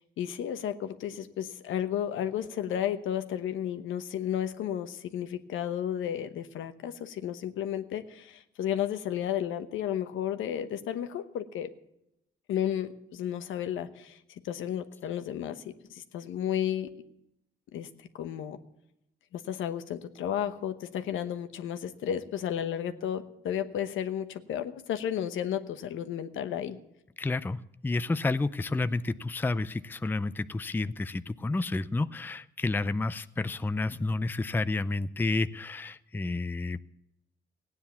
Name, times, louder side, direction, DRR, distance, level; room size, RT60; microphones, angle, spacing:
voice 1, 0.2-11.7 12.5-14.2 14.4-16.9 17.7-18.6 19.3-26.8, left 10 dB, 80° left, 9 dB, 1.1 m, -33 dB
voice 2, 27.2-27.6 27.8-36.8, left 3 dB, 10° left, 14 dB, 0.4 m, -30 dB
16.0 x 9.7 x 7.0 m, 0.84 s
cardioid pair, 90°, 20 cm